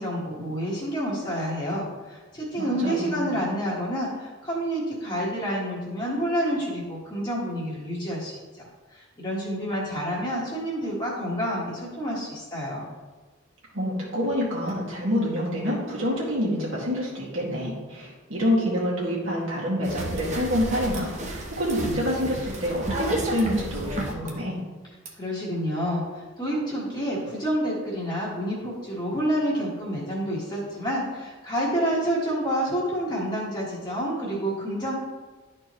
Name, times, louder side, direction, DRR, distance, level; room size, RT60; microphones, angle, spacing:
voice 1, 0.0-8.7 8.9-12.8 25.2-34.9, equal, 20° left, -6 dB, 1.5 m, -28 dB
voice 2, 2.6-3.3 13.7-24.6, equal, 70° right, -6 dB, 2.0 m, -27 dB
sound 1, 19.8-24.3 25.1-25.2, right 1 dB, 35° right, 0.9 m, -32 dB
11.5 x 4.4 x 3.1 m, 1.3 s
head